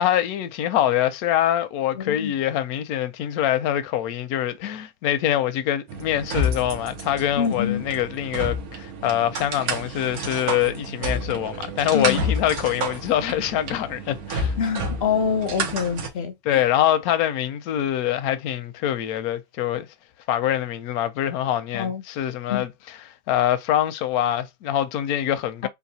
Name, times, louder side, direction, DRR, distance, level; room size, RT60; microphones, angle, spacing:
voice 1, 0.0-14.6 16.4-19.9 20.3-25.7, left 11 dB, 85° left, 1.1 m, -24 dB
voice 2, 2.0-2.3 7.4-7.8 11.9-12.2 14.6-16.6 21.7-22.0 22.5-22.6 25.6-25.7, left 7 dB, 60° left, 0.7 m, -25 dB
sound 1, 5.9-16.1, right 1 dB, 90° right, 1.4 m, -30 dB
3.9 x 2.3 x 2.7 m
omnidirectional pair, 1.5 m